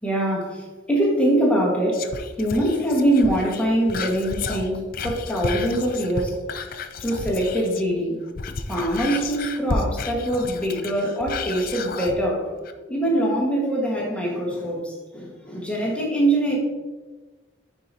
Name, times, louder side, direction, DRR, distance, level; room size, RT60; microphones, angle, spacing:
voice 1, 0.0-2.1 2.4-6.4 7.0-8.2 8.7-12.5 12.9-16.6, right 1 dB, 5° left, -3 dB, 1.4 m, -23 dB
Whispering, 1.9-7.9 8.2-12.2 12.6-12.7, left 4 dB, 50° left, 0.5 m, -32 dB
9.6 x 4.6 x 2.7 m, 1.3 s
head